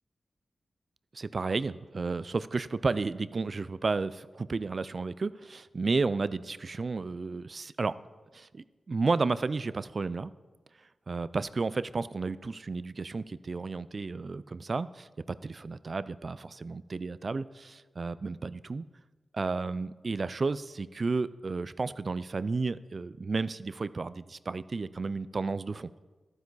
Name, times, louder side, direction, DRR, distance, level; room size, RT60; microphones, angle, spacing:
voice 1, 1.1-7.9 8.3-10.3 11.1-18.9 19.3-25.9, right 4 dB, 50° right, 16 dB, 0.4 m, -32 dB
12.0 x 9.7 x 4.0 m, 1.3 s
cardioid pair, 60°, 0 cm